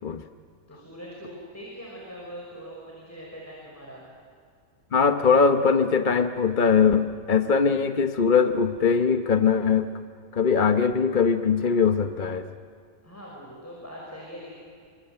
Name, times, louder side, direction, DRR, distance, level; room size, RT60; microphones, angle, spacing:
voice 1, 0.7-4.0 13.0-14.5, equal, 10° left, -3 dB, 5.9 m, -42 dB
voice 2, 4.9-9.9 10.3-12.5, left 5 dB, 40° left, 7 dB, 0.9 m, -21 dB
29.5 x 24.0 x 8.0 m, 2.3 s
omnidirectional pair, 1.5 m